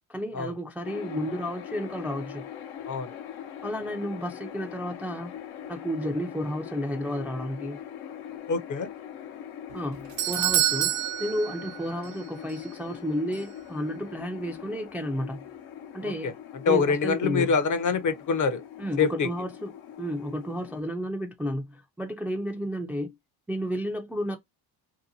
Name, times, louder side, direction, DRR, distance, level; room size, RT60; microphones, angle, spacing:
voice 1, 0.1-2.4 3.6-5.4 5.7-7.8 9.7-10.9 11.2-15.4 15.9-16.4 16.7-17.5 18.8-19.7 20.0-23.1 23.5-24.4, equal, 5° right, 0.4 m, -32 dB
sound 1, 0.8-20.8, left 9 dB, 80° left, 0.8 m, -42 dB
voice 2, 8.5-8.9 16.0-16.3 16.7-18.6 19.0-19.3, left 5 dB, 40° left, 0.7 m, -25 dB
Doorbell, 9.7-12.2 12.5-12.6 13.3-13.4, right 13 dB, 65° right, 0.7 m, -27 dB
2.7 x 2.2 x 2.6 m
supercardioid pair, 75°, 48 cm